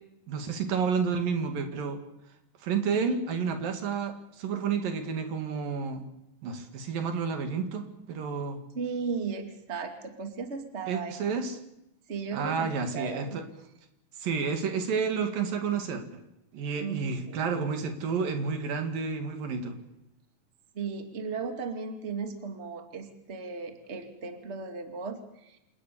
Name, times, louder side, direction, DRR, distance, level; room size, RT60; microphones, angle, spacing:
voice 1, 0.3-2.0 2.6-6.0 6.4-8.6 10.9-11.6 12.3-13.4 14.2-16.2 16.5-19.8, right 5 dB, 75° right, 7 dB, 4.0 m, -30 dB
voice 2, 8.7-11.1 12.1-13.4 16.8-17.0 17.2-17.5 20.7-25.6, right 5 dB, 20° right, 6 dB, 2.3 m, -36 dB
28.0 x 19.0 x 7.0 m, 0.85 s
omnidirectional pair, 4.0 m